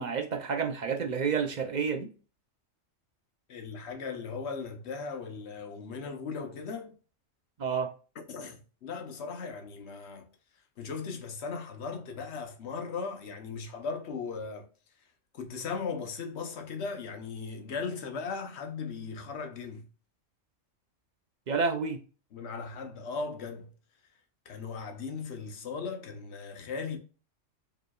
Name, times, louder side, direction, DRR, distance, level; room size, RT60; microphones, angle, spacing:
voice 1, 0.0-2.1 7.6-7.9 21.5-22.0, right 5 dB, 55° right, 0.5 m, -29 dB
voice 2, 3.5-7.0 8.3-10.3 10.8-14.7 15.3-19.9 22.3-23.7 24.4-27.0, left 5 dB, 60° left, 1.1 m, -37 dB
4.9 x 3.2 x 2.2 m
omnidirectional pair, 1.3 m